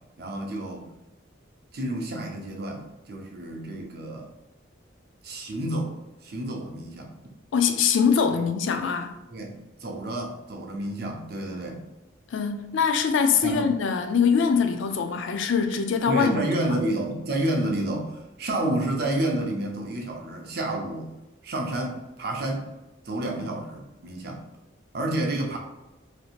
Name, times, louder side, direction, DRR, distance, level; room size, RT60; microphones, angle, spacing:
voice 1, 0.2-0.9 1.7-4.3 5.2-5.9 6.2-7.1 8.3-8.4 9.3-11.8 13.4-13.7 16.1-21.1 21.4-22.7 23.0-24.4 24.9-25.6, right 1 dB, 55° right, 0.5 m, -30 dB
voice 2, 7.5-9.2 12.3-16.4, left 6 dB, 75° left, 0.4 m, -23 dB
3.1 x 2.6 x 2.4 m
head